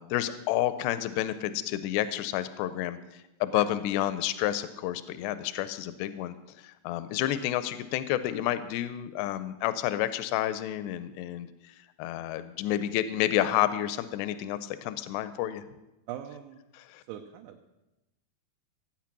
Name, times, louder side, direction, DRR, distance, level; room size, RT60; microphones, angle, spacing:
voice 1, 0.0-15.6 16.8-17.0, left 13 dB, 85° left, 13 dB, 2.7 m, -30 dB
voice 2, 16.1-16.6 17.1-17.7, right 11 dB, 80° right, 3 dB, 2.8 m, -41 dB
15.5 x 9.0 x 6.0 m, 0.97 s
omnidirectional pair, 4.8 m